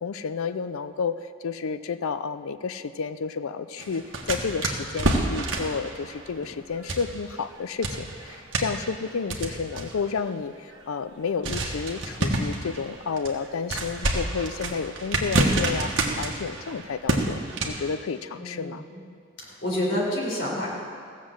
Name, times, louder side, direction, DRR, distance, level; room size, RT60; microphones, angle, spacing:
voice 1, 0.0-18.8, left 5 dB, 80° left, 11 dB, 0.5 m, -31 dB
sound 1, 3.8-7.5 7.8-10.2 10.7-10.8 11.4-17.9, right 2 dB, 60° right, 1.5 m, -28 dB
voice 2, 18.4-19.0 19.4-20.7, left 1 dB, 55° left, -4 dB, 4.2 m, -29 dB
16.0 x 7.4 x 7.4 m, 2.2 s
head